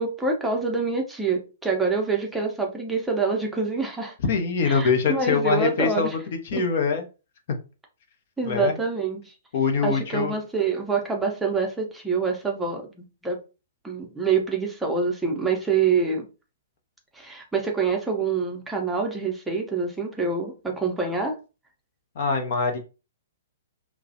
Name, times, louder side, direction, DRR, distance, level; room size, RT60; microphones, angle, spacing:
voice 1, 0.0-4.1 4.7-6.2 6.5-6.6 8.4-9.3 9.8-13.4 13.8-16.3 17.1-21.4, right 4 dB, 5° right, 1 dB, 0.6 m, -26 dB
voice 2, 4.2-6.2 6.5-7.0 8.5-8.8 9.5-10.3 22.2-22.8, left 5 dB, 50° left, 5 dB, 0.5 m, -23 dB
2.3 x 2.0 x 2.6 m, 0.31 s
figure-of-eight pair, 115°, 0 cm